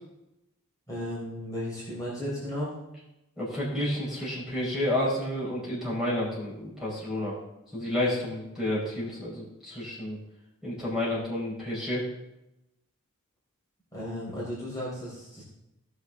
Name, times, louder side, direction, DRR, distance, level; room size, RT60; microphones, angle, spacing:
voice 1, 0.9-2.8 13.9-15.4, equal, 15° left, -7 dB, 3.9 m, -34 dB
voice 2, 3.4-7.3 7.7-10.2 10.6-12.0, left 1 dB, ahead, -7 dB, 4.4 m, -30 dB
18.0 x 6.6 x 3.6 m, 0.92 s
head